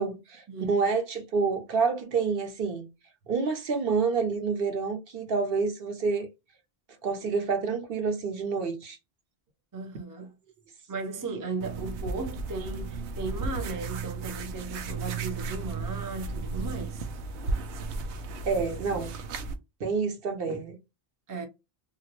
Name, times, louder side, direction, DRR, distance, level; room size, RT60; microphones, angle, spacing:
voice 1, 0.0-2.9 3.3-6.3 7.0-9.0 18.5-19.2 19.8-20.8, right 4 dB, 60° right, 1.0 m, -28 dB
voice 2, 9.7-10.3 10.9-17.1 21.3-21.5, right 4 dB, 25° right, 0.4 m, -36 dB
sound 1, 11.6-19.6, right 3 dB, 90° right, 0.9 m, -34 dB
2.9 x 2.5 x 2.8 m
omnidirectional pair, 1.1 m